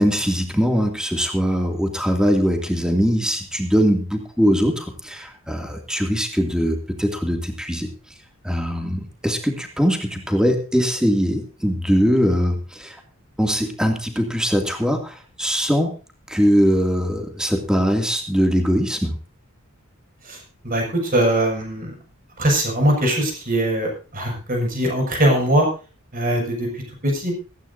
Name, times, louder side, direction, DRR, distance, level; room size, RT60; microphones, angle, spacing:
voice 1, 0.0-7.9 8.4-13.0 13.4-15.9 16.3-19.2, equal, 5° right, 3 dB, 2.5 m, -21 dB
voice 2, 20.6-21.9 22.4-25.7 26.1-27.3, right 1 dB, 40° right, 2 dB, 6.7 m, -21 dB
17.5 x 15.5 x 2.7 m, 0.35 s
head